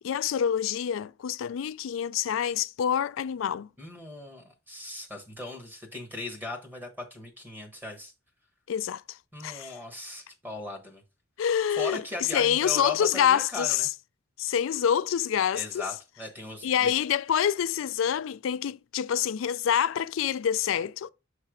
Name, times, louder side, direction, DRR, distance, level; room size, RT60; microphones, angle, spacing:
voice 1, 0.0-3.7 8.7-9.2 9.4-9.7 11.4-12.0 12.3-13.8 14.4-15.8 16.6-21.1, left 9 dB, 75° left, 0.3 m, -26 dB
voice 2, 3.8-8.1 9.3-11.0 11.8-13.9 15.5-16.9, left 2 dB, 10° right, 1.1 m, -38 dB
6.8 x 3.3 x 4.9 m
head